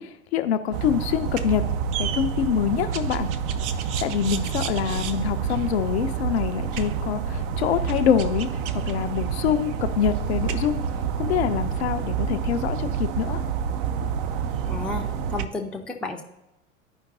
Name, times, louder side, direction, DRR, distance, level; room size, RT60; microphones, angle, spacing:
voice 1, 0.0-1.7 2.0-3.3 3.8-8.5 8.7-10.8 11.2-13.4, left 9 dB, 50° left, 8 dB, 0.6 m, -25 dB
sound 1, 0.7-15.5, right 7 dB, 40° right, 0.5 m, -28 dB
voice 2, 14.7-16.2, left 3 dB, 5° left, 2 dB, 0.6 m, -32 dB
13.5 x 5.1 x 2.7 m, 0.95 s
figure-of-eight pair, 85°, 40 cm